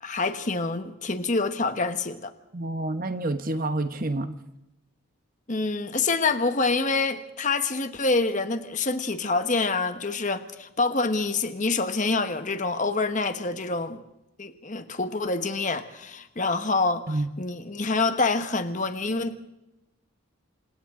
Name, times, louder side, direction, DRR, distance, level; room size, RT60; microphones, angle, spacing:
voice 1, 0.0-2.3 5.5-14.0 14.4-19.4, left 3 dB, 35° left, 1.3 m, -26 dB
voice 2, 2.5-4.3 17.1-17.3, right 2 dB, 40° right, 1.0 m, -28 dB
28.5 x 26.5 x 3.8 m
head